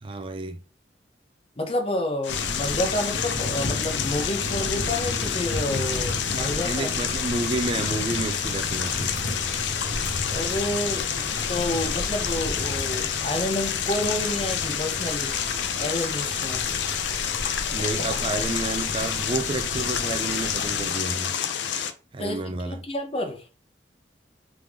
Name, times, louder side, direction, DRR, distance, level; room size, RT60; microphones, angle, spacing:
voice 1, 0.0-0.6 6.7-9.2 17.7-21.3 22.1-22.8, right 3 dB, 30° right, 0.3 m, -30 dB
voice 2, 1.6-6.9 10.3-15.3 15.8-16.6 22.2-23.5, left 1 dB, 30° left, 0.8 m, -29 dB
sound 1, 2.2-21.9, left 8 dB, 80° left, 0.5 m, -28 dB
sound 2, 2.3-20.9, left 1 dB, 50° left, 1.3 m, -34 dB
Fixed-wing aircraft airplane, 5.8-19.3, left 2 dB, 5° right, 1.0 m, -47 dB
3.6 x 3.3 x 3.5 m
head